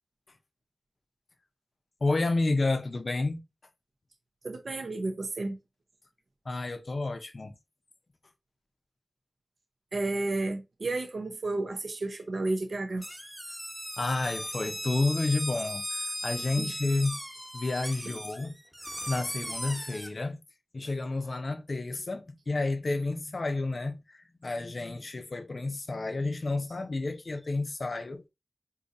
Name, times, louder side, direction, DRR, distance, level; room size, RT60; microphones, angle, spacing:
voice 1, 2.0-3.4 6.5-7.5 14.0-17.2 17.5-18.6 19.1-20.4 20.7-28.2, left 2 dB, 60° left, 0.5 m, -30 dB
voice 2, 4.4-5.6 9.9-13.0 16.6-16.7, right 2 dB, 80° right, 0.6 m, -32 dB
sound 1, 13.0-20.1, equal, ahead, 1.0 m, -37 dB
3.9 x 2.6 x 2.5 m
wide cardioid pair, 55°, 0 cm